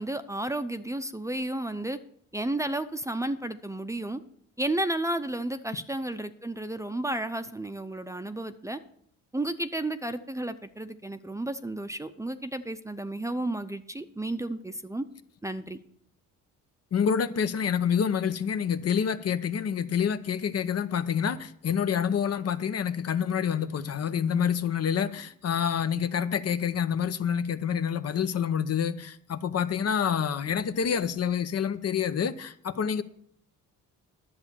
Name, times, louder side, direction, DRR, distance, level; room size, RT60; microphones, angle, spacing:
voice 1, 0.0-2.0 2.3-4.2 4.6-8.8 9.3-15.0 15.4-15.8, right 1 dB, 10° right, 0.7 m, -32 dB
voice 2, 16.9-33.0, left 7 dB, 50° left, 0.8 m, -27 dB
10.5 x 7.1 x 6.9 m
cardioid pair, 80°, 33 cm